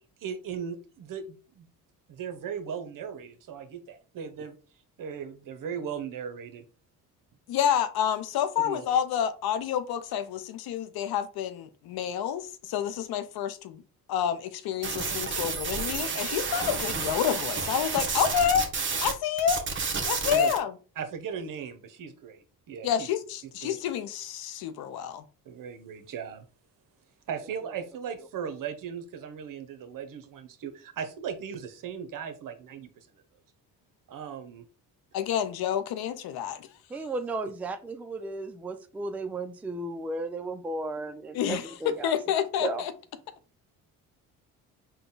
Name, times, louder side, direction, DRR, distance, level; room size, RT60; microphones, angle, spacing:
voice 1, 0.2-1.7 2.1-4.6 5.0-6.6 8.6-8.8 20.2-20.5 21.0-23.1 23.4-23.8 25.4-26.5 27.3-33.1 34.1-34.6, right 7 dB, 60° right, 0.8 m, -38 dB
voice 2, 7.5-13.8 14.1-18.7 19.0-19.6 20.0-20.7 22.8-25.2 35.1-36.7 41.4-42.9, left 9 dB, 75° left, 0.6 m, -28 dB
sound 1, 14.8-19.1 19.4-20.6, right 5 dB, 30° right, 1.0 m, -30 dB
voice 3, 36.9-41.1 41.5-42.1 42.6-42.8, right 2 dB, 5° right, 0.3 m, -34 dB
3.9 x 2.2 x 3.8 m
cardioid pair, 90°, 38 cm